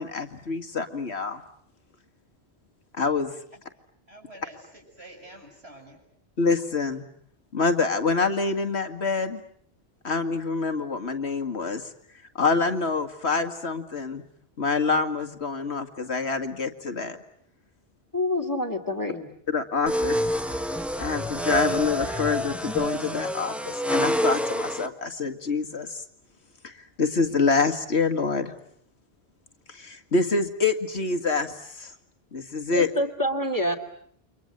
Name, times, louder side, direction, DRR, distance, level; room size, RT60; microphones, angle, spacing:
voice 1, 0.0-1.4 3.0-3.3 6.4-7.0 7.5-9.4 10.0-11.8 12.4-14.2 14.6-17.2 19.5-20.5 21.0-26.0 26.6-28.5 29.7-31.9 32.3-32.9, left 4 dB, 90° left, 8 dB, 2.2 m, -26 dB
voice 2, 4.1-6.0, right 1 dB, 75° right, 2 dB, 7.5 m, -47 dB
voice 3, 18.1-19.3 32.7-33.8, left 1 dB, 20° left, 6 dB, 2.5 m, -27 dB
sound 1, 19.9-24.9, equal, ahead, 1.2 m, -27 dB
29.5 x 25.0 x 7.9 m, 0.65 s
omnidirectional pair, 1.1 m